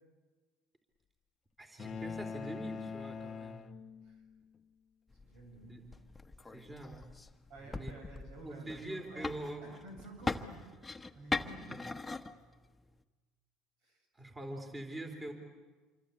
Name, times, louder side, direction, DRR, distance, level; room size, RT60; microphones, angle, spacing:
voice 1, 1.6-3.7 5.6-5.8 6.5-7.1 7.6-7.9 8.4-9.6 11.7-11.8 14.1-15.3, right 1 dB, 20° right, 4 dB, 3.6 m, -44 dB
sound 1, 1.8-4.3, left 6 dB, 35° left, 0.8 m, -43 dB
sound 2, 5.1-13.0, left 3 dB, 10° left, 1.2 m, -42 dB
voice 2, 5.2-5.8 7.5-9.3 9.6-10.6 11.2-11.7 13.8-14.4, right 2 dB, 75° right, 4 dB, 7.2 m, -52 dB
27.0 x 24.0 x 8.3 m, 1.4 s
supercardioid pair, 100°, 0 cm